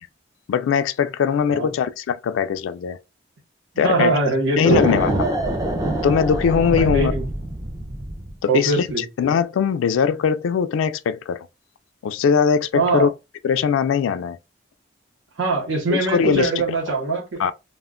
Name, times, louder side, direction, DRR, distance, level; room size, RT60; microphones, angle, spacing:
voice 1, 0.5-3.0 3.8-4.1 4.6-5.1 6.0-7.1 8.4-11.5 12.0-13.1 13.4-14.4 15.9-16.5 16.9-17.0 17.4-17.5, left 7 dB, 80° left, 0.3 m, -20 dB
voice 2, 3.7-4.9 6.8-7.2 8.5-9.0 12.7-13.1 15.4-17.4, right 3 dB, 75° right, 0.8 m, -22 dB
sound 1, 4.7-8.4, right 1 dB, 20° right, 0.4 m, -24 dB
2.1 x 2.1 x 3.5 m
head